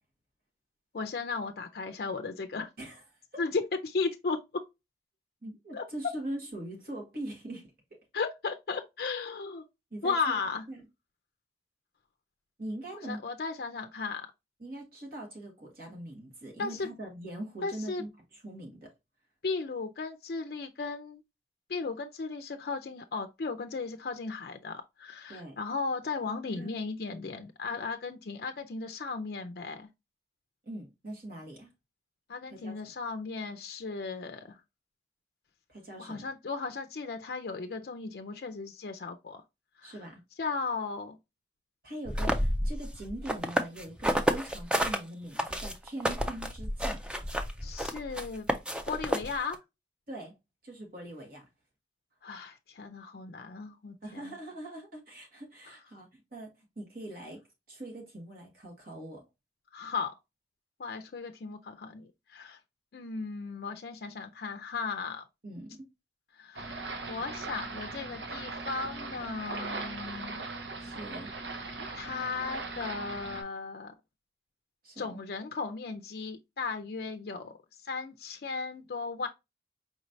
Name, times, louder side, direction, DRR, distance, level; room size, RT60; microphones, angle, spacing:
voice 1, 0.9-2.7 3.4-4.6 5.7-5.8 8.1-9.6 10.0-10.6 13.1-14.3 16.6-16.9 17.6-18.0 19.4-21.2 21.7-29.9 32.3-34.6 36.0-39.4 39.8-39.9 40.4-41.2 47.6-48.5 48.9-49.6 52.2-54.3 59.7-60.1 60.8-62.6 62.9-65.3 66.4-70.4 71.6-73.9 75.0-77.5 77.8-79.3, left 4 dB, 55° left, 0.4 m, -36 dB
voice 2, 5.4-7.7 9.9-10.4 10.7-10.8 12.6-13.2 14.6-18.9 25.3-25.6 26.5-26.7 30.6-31.7 32.5-32.9 35.7-36.3 39.8-40.2 41.8-47.0 50.1-50.4 50.6-51.5 54.0-57.4 57.7-59.3 65.4-65.8 70.8-71.3 74.8-75.2, right 1 dB, 55° right, 1.6 m, -42 dB
sound 1, 42.1-45.0 45.4-49.5, equal, 5° right, 0.4 m, -30 dB
sound 2, 66.5-73.4, right 3 dB, 75° right, 0.9 m, -39 dB
5.0 x 3.1 x 2.6 m
head